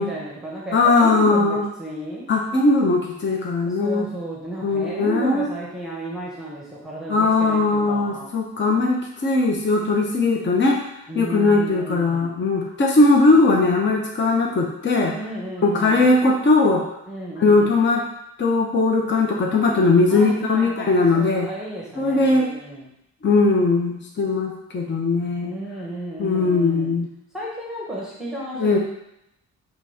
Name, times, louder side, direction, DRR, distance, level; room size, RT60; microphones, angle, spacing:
voice 1, 0.0-2.3 3.6-8.3 11.1-12.3 15.1-16.2 17.1-17.8 20.1-22.9 25.4-26.9 27.3-28.8, right 1 dB, ahead, -5 dB, 1.1 m, -33 dB
voice 2, 0.7-1.7 2.3-4.1 4.6-5.5 7.1-10.8 11.1-15.1 15.6-16.8 17.4-18.0 18.4-21.5 22.0-22.5 23.2-25.5 26.2-27.1 28.6-28.8, left 3 dB, 35° left, 0 dB, 0.9 m, -19 dB
6.0 x 3.2 x 5.7 m, 0.81 s
wide cardioid pair, 170°, 31 cm